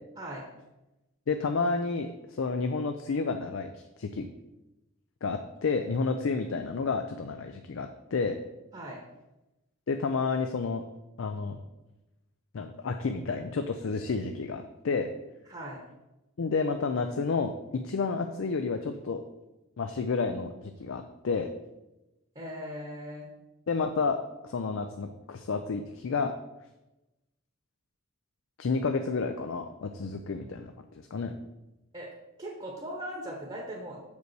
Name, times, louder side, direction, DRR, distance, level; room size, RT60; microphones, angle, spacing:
voice 1, 1.3-4.3 5.2-8.4 9.9-10.8 11.2-11.6 12.5-15.1 16.4-19.2 19.8-21.5 23.7-24.2 24.4-26.3 28.6-31.3, left 4 dB, 65° left, 6 dB, 0.4 m, -30 dB
voice 2, 15.5-15.8 22.3-23.3 31.9-32.1 32.4-34.0, equal, 25° right, -1 dB, 1.0 m, -39 dB
6.6 x 5.2 x 4.7 m, 0.98 s
head